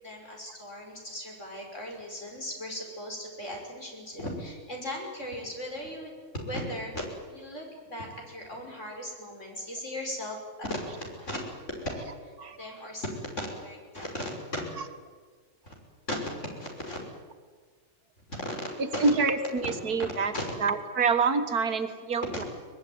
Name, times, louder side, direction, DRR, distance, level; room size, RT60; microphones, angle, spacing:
voice 1, 0.0-7.0 7.3-12.3 12.6-14.3 15.7-15.8 16.6-17.0 18.3-18.4 18.9-19.2 19.6-19.7 20.3-20.5, left 1 dB, 50° left, 0 dB, 6.3 m, -37 dB
voice 2, 19.0-20.3 20.6-22.4, right 4 dB, 85° right, 8 dB, 2.2 m, -26 dB
23.0 x 21.0 x 9.5 m, 1.5 s
omnidirectional pair, 1.6 m